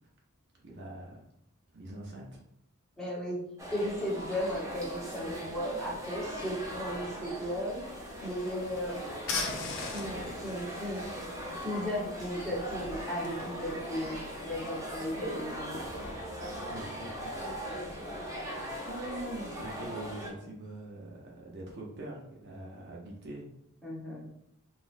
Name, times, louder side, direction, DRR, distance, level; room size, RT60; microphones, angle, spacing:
voice 1, 0.5-1.2 1.7-2.4 16.5-18.5 18.9-23.5, right 1 dB, 50° right, -2 dB, 0.7 m, -44 dB
voice 2, 3.0-3.4 3.7-7.9 8.2-9.0 9.9-11.0 11.6-15.8 23.8-24.3, equal, 5° left, -6 dB, 1.0 m, -35 dB
sound 1, 3.6-20.3, equal, 15° right, 0.7 m, -40 dB
sound 2, 7.9-16.1, left 4 dB, 65° left, 0.6 m, -42 dB
3.8 x 2.5 x 2.5 m, 0.77 s
head